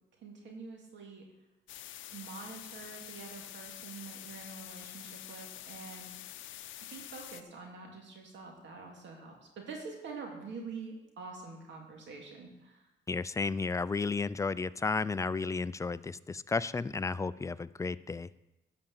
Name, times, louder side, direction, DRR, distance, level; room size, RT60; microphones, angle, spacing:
voice 1, 0.2-1.2 2.1-6.1 6.9-12.8, right 4 dB, 70° right, 1 dB, 2.2 m, -46 dB
sound 1, 1.7-7.4, left 13 dB, 80° left, 0.6 m, -47 dB
voice 2, 13.1-18.3, left 4 dB, 15° left, 16 dB, 0.3 m, -33 dB
11.5 x 5.1 x 7.2 m, 0.96 s
cardioid pair, 90°, 20 cm